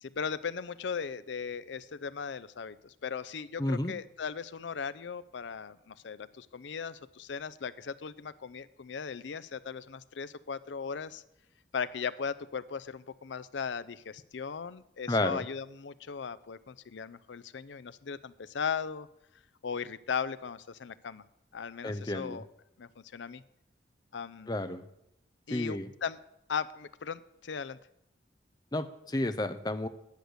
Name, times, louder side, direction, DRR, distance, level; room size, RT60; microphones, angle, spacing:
voice 1, 0.0-11.2 11.7-19.1 19.6-21.2 21.5-22.5 22.8-23.4 24.1-24.5 25.5-26.2 26.5-27.8, left 6 dB, 75° left, 16 dB, 0.5 m, -38 dB
voice 2, 3.6-3.9 15.1-15.4 21.8-22.4 24.5-24.8 25.5-25.9 28.7-29.9, left 1 dB, 20° left, 9 dB, 0.6 m, -31 dB
10.5 x 6.6 x 7.9 m, 0.81 s
head